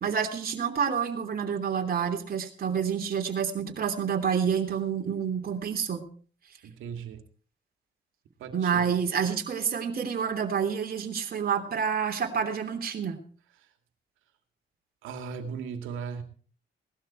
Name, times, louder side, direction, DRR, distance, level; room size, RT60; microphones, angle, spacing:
voice 1, 0.0-6.0 8.5-13.2, right 7 dB, 50° right, 2 dB, 3.1 m, -28 dB
voice 2, 6.6-7.2 8.4-8.9 15.0-16.2, right 6 dB, 90° right, 6 dB, 2.6 m, -37 dB
18.5 x 12.5 x 4.6 m, 0.42 s
cardioid pair, 90°, 20 cm